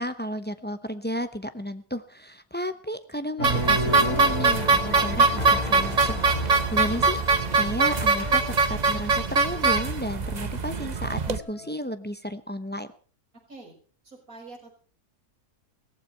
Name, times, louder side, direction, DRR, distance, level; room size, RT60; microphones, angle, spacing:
voice 1, 0.0-8.4 8.7-12.9, equal, 10° left, 9 dB, 0.5 m, -33 dB
sound 1, 3.4-10.6 11.1-11.7, left 1 dB, 70° left, 3.3 m, -34 dB
sound 2, 3.4-11.4, right 4 dB, 35° right, 0.7 m, -23 dB
voice 2, 14.0-14.7, right 3 dB, 60° right, -2 dB, 6.7 m, -45 dB
17.5 x 15.0 x 4.6 m, 0.41 s
omnidirectional pair, 1.6 m